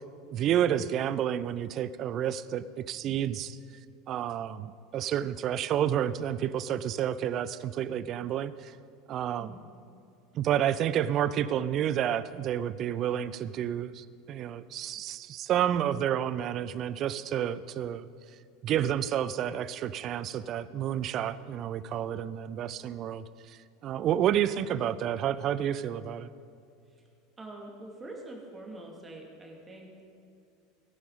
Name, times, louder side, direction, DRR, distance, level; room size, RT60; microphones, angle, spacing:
voice 1, 0.3-3.6 4.1-8.7 9.1-9.5 10.3-18.1 18.6-26.3, right 10 dB, 40° right, 16 dB, 0.4 m, -30 dB
voice 2, 27.4-30.0, right 2 dB, 20° right, 0 dB, 2.4 m, -45 dB
16.5 x 10.5 x 4.0 m, 2.5 s
figure-of-eight pair, 75°, 0 cm